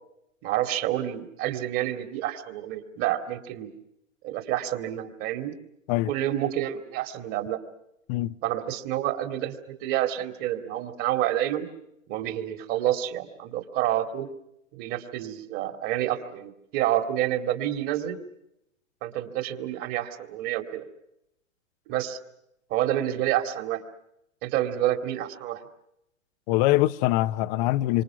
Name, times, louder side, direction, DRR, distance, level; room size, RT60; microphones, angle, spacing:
voice 1, 0.4-3.7 4.2-5.5 6.1-7.6 8.4-9.5 9.8-11.7 12.1-14.3 14.7-18.2 19.0-20.8 21.9-22.2 22.7-23.8 24.4-25.6, right 12 dB, 35° right, 2.6 m, -28 dB
voice 2, 26.5-28.0, left 17 dB, 30° left, 0.8 m, -23 dB
27.0 x 26.0 x 5.9 m
hypercardioid pair, 125°, 40 cm